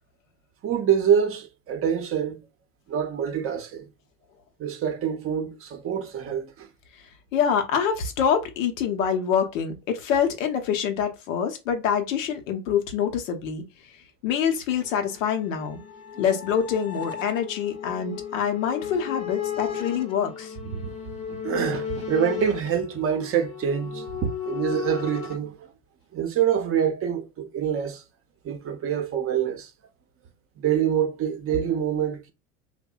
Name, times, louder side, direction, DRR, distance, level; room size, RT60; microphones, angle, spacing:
voice 1, 0.6-2.5 2.9-3.9 4.6-6.7 20.6-25.7 26.1-28.0 28.4-29.7 30.6-32.3, right 8 dB, 35° right, 0.6 m, -26 dB
voice 2, 7.3-13.6 14.2-15.8 16.2-20.6, left 7 dB, 80° left, 0.7 m, -25 dB
sound 1, 14.7-25.4, left 8 dB, 40° left, 0.7 m, -35 dB
2.7 x 2.1 x 2.3 m
hypercardioid pair, 85°, 38 cm